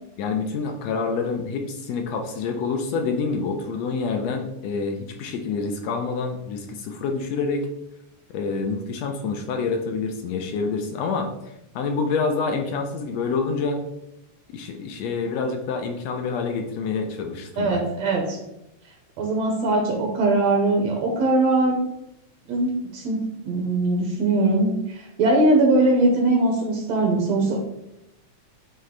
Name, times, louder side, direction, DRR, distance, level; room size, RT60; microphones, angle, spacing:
voice 1, 0.2-7.7 8.3-11.3 11.7-13.8 14.5-17.8, left 4 dB, 75° left, 4 dB, 1.7 m, -27 dB
voice 2, 17.6-18.4 19.2-21.8 22.5-23.2 23.4-27.6, right 2 dB, 70° right, 0 dB, 2.0 m, -21 dB
9.5 x 3.2 x 3.8 m, 0.87 s
omnidirectional pair, 3.4 m